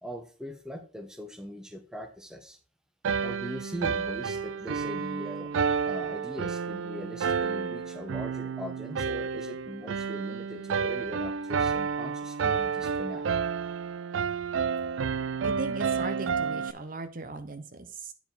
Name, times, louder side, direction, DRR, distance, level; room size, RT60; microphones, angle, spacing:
voice 1, 0.0-2.6 3.2-5.5 5.8-13.3, equal, 5° right, 6 dB, 0.9 m, -40 dB
sound 1, 3.0-16.7, right 6 dB, 85° right, 0.4 m, -30 dB
voice 2, 15.4-18.1, right 3 dB, 45° right, 9 dB, 0.8 m, -38 dB
9.2 x 4.8 x 4.0 m, 0.38 s
head